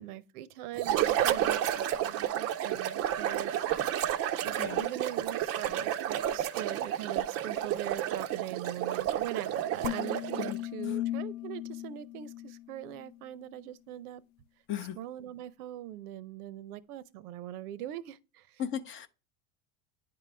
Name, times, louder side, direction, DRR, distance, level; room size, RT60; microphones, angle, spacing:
voice 1, 0.0-4.0 4.4-14.2 15.0-18.6, right 12 dB, 90° right, 0.7 m, -42 dB
sound 1, 0.8-10.7, right 11 dB, 35° right, 0.4 m, -31 dB
sound 2, 9.8-13.2, left 14 dB, 75° left, 0.6 m, -37 dB
voice 2, 10.4-11.0 14.7-15.0 18.6-19.1, left 9 dB, 30° left, 0.5 m, -37 dB
9.5 x 3.9 x 3.2 m
supercardioid pair, 125°, 44 cm